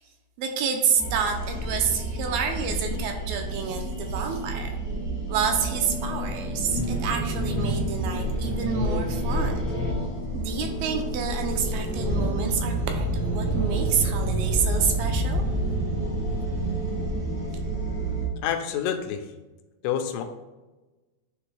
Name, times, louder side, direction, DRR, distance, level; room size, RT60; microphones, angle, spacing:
voice 1, 0.4-4.8 5.3-9.7 10.3-15.4, right 6 dB, 80° right, 3 dB, 2.4 m, -28 dB
sound 1, 1.0-18.3, right 1 dB, 20° right, 0.5 m, -28 dB
sound 2, 4.1-12.0, left 2 dB, 60° left, 0.4 m, -42 dB
voice 2, 18.4-19.3 19.8-20.2, left 9 dB, 85° left, 6 dB, 2.6 m, -27 dB
9.3 x 3.5 x 3.3 m, 1.1 s
omnidirectional pair, 4.6 m